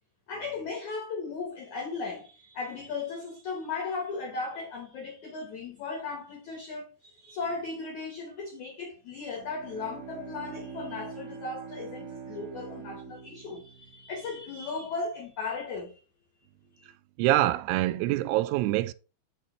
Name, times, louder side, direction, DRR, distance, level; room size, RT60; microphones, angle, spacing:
voice 1, 0.3-16.0 16.8-16.9, left 4 dB, 75° left, 1.7 m, -36 dB
Bowed string instrument, 9.2-14.8, right 6 dB, 50° right, 2.0 m, -44 dB
voice 2, 17.2-18.9, right 15 dB, 85° right, 2.9 m, -25 dB
6.6 x 6.0 x 4.4 m
omnidirectional pair, 5.5 m